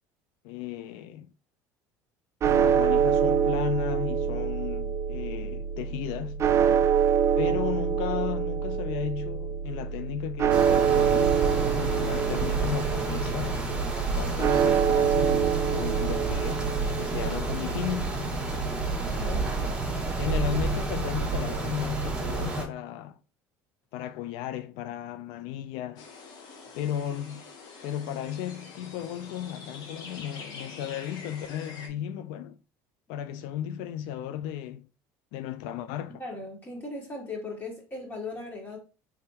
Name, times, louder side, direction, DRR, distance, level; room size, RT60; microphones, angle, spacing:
voice 1, 0.4-1.3 2.4-6.4 7.4-13.5 14.0-16.7 17.0-18.2 20.2-23.2 23.9-26.1 26.7-27.4 27.8-32.6 33.1-34.9 35.3-36.2, left 10 dB, 75° left, 0.4 m, -35 dB
sound 1, 2.4-20.6, right 7 dB, 35° right, 0.3 m, -26 dB
sound 2, 10.5-22.7, right 3 dB, 15° right, 1.4 m, -30 dB
voice 2, 19.0-19.6 36.1-38.8, left 2 dB, 25° left, 1.9 m, -38 dB
sound 3, 26.0-31.9, left 4 dB, 60° left, 1.0 m, -45 dB
3.6 x 3.4 x 2.8 m
supercardioid pair, 95°, 8 cm